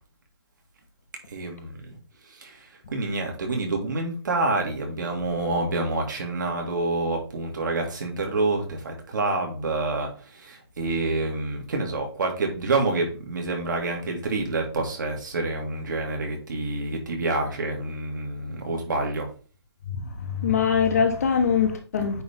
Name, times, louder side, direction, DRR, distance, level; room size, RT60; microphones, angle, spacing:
voice 1, 1.3-2.0 2.3-19.3, right 2 dB, 45° right, 1.9 m, -28 dB
voice 2, 19.9-22.2, left 6 dB, 35° left, 1.0 m, -23 dB
9.0 x 3.3 x 3.5 m
hypercardioid pair, 170°, 14 cm